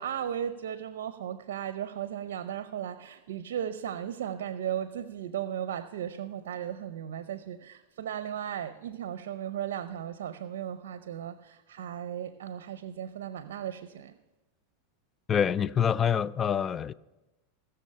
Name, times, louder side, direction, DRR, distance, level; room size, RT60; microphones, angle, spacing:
voice 1, 0.0-14.2, right 10 dB, 85° right, 0.6 m, -36 dB
voice 2, 15.3-16.9, left 8 dB, 25° left, 0.4 m, -26 dB
18.5 x 6.9 x 5.5 m
supercardioid pair, 125°, 0 cm